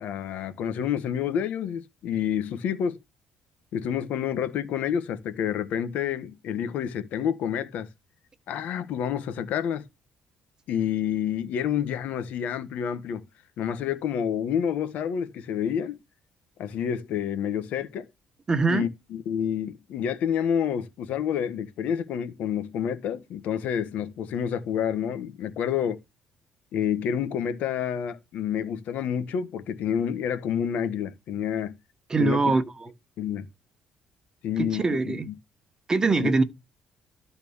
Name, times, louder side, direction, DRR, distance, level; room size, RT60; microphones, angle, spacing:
voice 1, 0.0-3.0 3.7-7.9 8.5-9.8 10.7-13.2 13.6-16.0 16.6-18.1 18.7-26.0 26.7-31.8 32.2-32.5 33.2-33.5 34.4-35.3 36.2-36.3, left 8 dB, 75° left, 1.4 m, -28 dB
voice 2, 18.5-18.9 32.1-32.9 34.6-35.3 35.9-36.4, right 3 dB, 25° right, 1.2 m, -23 dB
12.5 x 4.4 x 7.1 m
cardioid pair, 110°, 3 cm